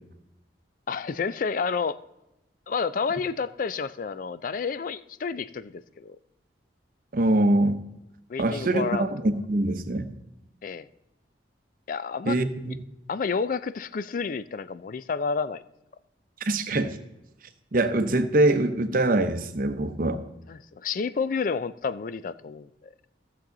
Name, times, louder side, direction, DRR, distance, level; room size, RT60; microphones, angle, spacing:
voice 1, 0.9-2.0 2.7-6.2 8.3-9.1 10.6-10.9 11.9-12.4 13.1-15.6 20.5-22.9, left 5 dB, 45° left, 16 dB, 0.4 m, -30 dB
voice 2, 7.1-7.8 8.4-10.1 12.3-12.8 16.4-17.0 17.7-20.2, right 2 dB, 50° right, 9 dB, 0.8 m, -23 dB
15.5 x 7.0 x 3.8 m, 0.93 s
head